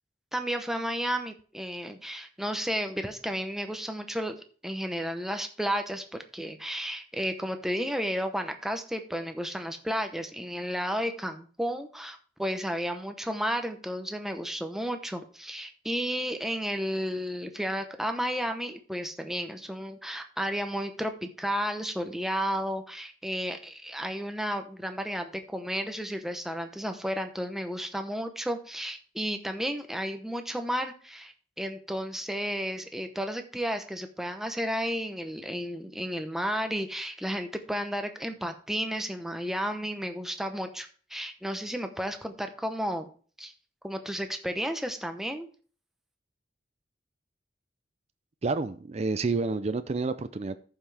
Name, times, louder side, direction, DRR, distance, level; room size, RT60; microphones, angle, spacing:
voice 1, 0.3-43.1 43.4-43.5 43.8-45.5, equal, ahead, 0.9 m, -32 dB
voice 2, 48.4-50.6, right 3 dB, 35° right, 0.4 m, -29 dB
14.0 x 5.7 x 3.4 m
head